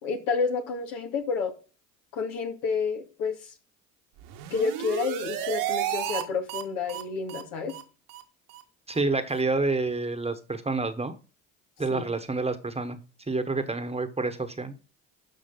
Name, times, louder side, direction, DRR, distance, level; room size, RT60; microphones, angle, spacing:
voice 1, 0.0-1.5 2.1-3.5 4.5-7.8 11.9-12.0, left 5 dB, 80° left, 2.2 m, -29 dB
sound 1, 4.2-6.2 6.5-6.6 6.9-7.0 7.3-7.4 7.7-7.8 8.1-8.2 8.5-8.6 8.9-9.0 9.3-9.4, right 11 dB, 70° right, 1.6 m, -32 dB
voice 2, 8.9-11.1 11.8-13.0 13.3-14.7, right 3 dB, 15° right, 1.3 m, -28 dB
12.5 x 5.1 x 3.9 m
hypercardioid pair, 70°, 40 cm